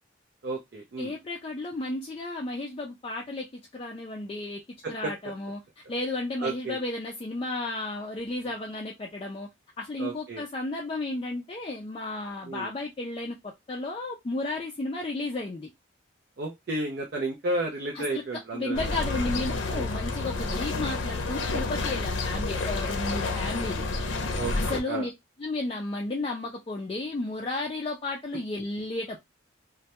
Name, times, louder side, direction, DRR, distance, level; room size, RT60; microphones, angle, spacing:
voice 1, 0.4-1.1 4.8-5.1 6.4-6.8 10.0-10.4 12.4-12.7 16.4-18.8 19.7-19.8 24.3-25.1, right 2 dB, 50° right, 0.4 m, -32 dB
voice 2, 1.0-3.5 3.7-4.6 4.9-9.5 9.8-15.7 18.0-18.2 18.5-23.8 24.5-25.1 25.4-29.2, left 2 dB, 30° left, 0.3 m, -33 dB
sound 1, 18.7-24.8, left 3 dB, 80° left, 0.6 m, -29 dB
2.2 x 2.1 x 2.8 m
head